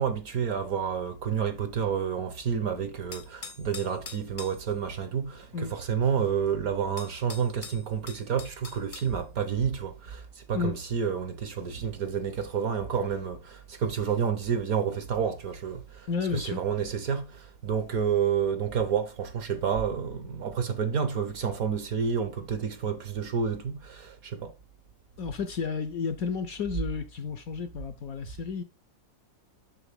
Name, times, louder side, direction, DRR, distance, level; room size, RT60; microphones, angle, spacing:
voice 1, 0.0-24.5, right 7 dB, 55° right, 1.2 m, -29 dB
sound 1, 3.1-4.6 6.5-6.6 7.0-9.1, left 5 dB, 40° left, 0.7 m, -43 dB
voice 2, 16.1-16.6 25.2-28.6, left 5 dB, 65° left, 1.0 m, -32 dB
7.0 x 6.1 x 3.5 m
omnidirectional pair, 2.0 m